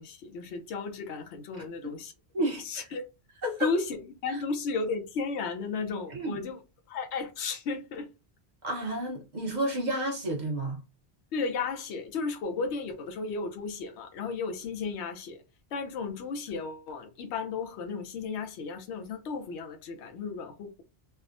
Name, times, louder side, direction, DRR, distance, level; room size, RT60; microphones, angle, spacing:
voice 1, 0.0-2.1 2.6-3.1 3.6-6.6 6.9-8.1 11.3-15.4 15.7-20.8, left 4 dB, 80° left, 0.9 m, -34 dB
voice 2, 1.6-1.9 2.3-2.9 3.4-3.7 6.1-6.4 8.6-10.8, right 1 dB, 45° right, 0.9 m, -31 dB
3.3 x 2.0 x 2.4 m
omnidirectional pair, 1.1 m